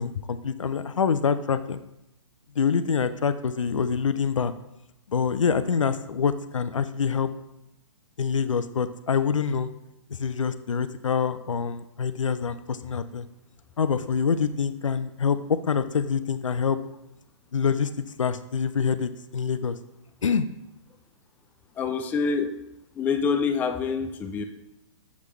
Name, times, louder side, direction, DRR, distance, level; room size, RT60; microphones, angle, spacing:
voice 1, 0.0-1.8 2.6-4.5 5.1-7.3 8.2-9.7 10.2-13.3 13.8-16.8 17.5-17.9 18.2-19.8 20.2-20.5, left 6 dB, 75° left, 12 dB, 0.5 m, -25 dB
voice 2, 21.8-22.5 23.0-24.4, left 5 dB, 10° left, 6 dB, 0.4 m, -26 dB
7.0 x 6.3 x 3.2 m, 0.89 s
figure-of-eight pair, 120°, 17 cm